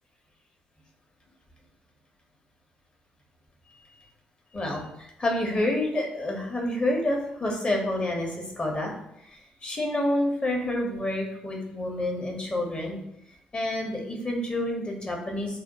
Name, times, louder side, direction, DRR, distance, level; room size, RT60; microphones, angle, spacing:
voice 1, 3.7-4.1 4.5-8.9 9.2-13.0 13.5-15.6, left 1 dB, 25° left, 0 dB, 1.1 m, -29 dB
3.4 x 2.2 x 4.2 m, 0.77 s
figure-of-eight pair, 45°, 4 cm